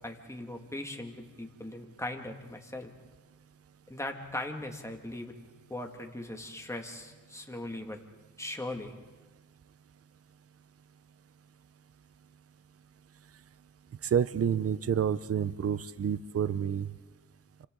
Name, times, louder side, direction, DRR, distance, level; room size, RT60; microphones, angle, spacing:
voice 1, 0.0-2.9 3.9-5.4 5.7-8.0 8.4-8.9, left 1 dB, 10° left, 3 dB, 2.2 m, -39 dB
voice 2, 14.0-16.9, right 8 dB, 45° right, 16 dB, 0.6 m, -29 dB
29.0 x 26.0 x 3.9 m, 1.2 s
cardioid pair, 80°, 34 cm